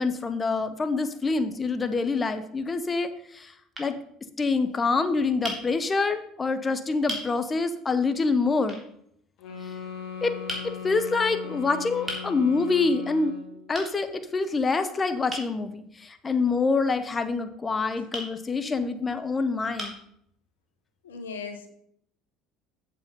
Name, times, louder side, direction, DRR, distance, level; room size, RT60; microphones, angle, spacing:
voice 1, 0.0-3.5 3.8-4.0 4.4-8.8 10.2-10.3 10.8-13.3 13.7-19.9, left 4 dB, 25° left, 9 dB, 1.0 m, -26 dB
sound 1, 2.5-2.6 3.3-3.5 3.7-3.9 5.4-5.6 6.5-6.6 7.1-7.3 8.7-8.9 10.5-10.7 12.1-12.3 13.7-13.9 15.3-15.5 18.1-18.3 19.2-19.3 19.8-20.1, equal, 15° right, 3.4 m, -35 dB
sound 2, 9.4-13.6, left 7 dB, 60° left, 2.2 m, -38 dB
voice 2, 21.0-21.7, left 5 dB, 90° left, 7 dB, 1.0 m, -37 dB
7.8 x 7.0 x 5.3 m, 0.70 s
hypercardioid pair, 70°, 0 cm